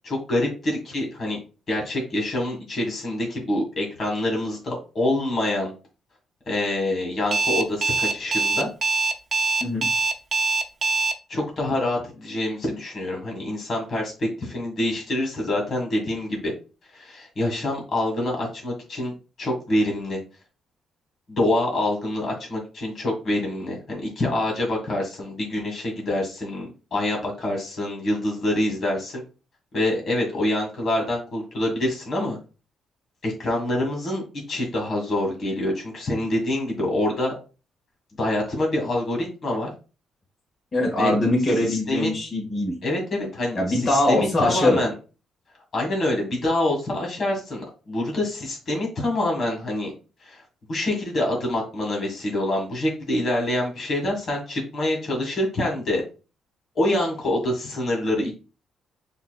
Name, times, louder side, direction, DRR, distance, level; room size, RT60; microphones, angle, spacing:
voice 1, 0.0-1.4 1.7-5.7 6.5-8.7 11.3-16.5 16.9-19.1 19.4-20.2 21.3-29.2 29.7-32.4 33.2-34.2 34.5-37.3 38.2-39.7 41.0-41.1 41.7-42.1 42.8-43.6 43.9-44.9 45.7-49.9 50.2-50.4 50.7-56.0 56.8-58.3, left 1 dB, 55° left, 0 dB, 1.7 m, -26 dB
Alarm, 7.3-11.1, right 3 dB, 45° right, 0.6 m, -22 dB
voice 2, 40.7-42.7 43.5-44.8, left 1 dB, 35° left, -2 dB, 1.6 m, -22 dB
5.7 x 2.8 x 2.3 m, 0.34 s
cardioid pair, 90°, 0 cm